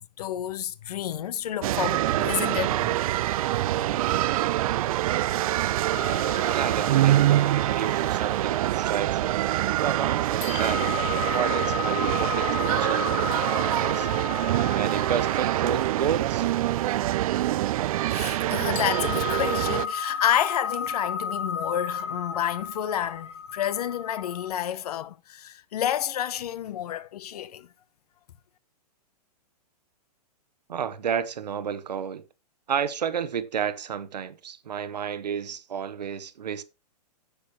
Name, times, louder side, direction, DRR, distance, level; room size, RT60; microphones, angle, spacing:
voice 1, 0.0-2.9 3.4-3.9 4.9-5.1 6.4-6.6 18.1-27.7, left 10 dB, 70° left, 0.9 m, -30 dB
sound 1, 1.6-19.9, right 14 dB, 60° right, 0.4 m, -25 dB
sound 2, 5.9-10.0 10.4-18.5 18.8-24.5, left 7 dB, 45° left, 1.5 m, -34 dB
voice 2, 6.5-9.4 9.7-11.1 11.3-14.1 14.7-16.5 30.7-32.2 32.7-36.6, right 8 dB, 85° right, 1.1 m, -31 dB
10.0 x 8.1 x 3.2 m
hypercardioid pair, 135°, 21 cm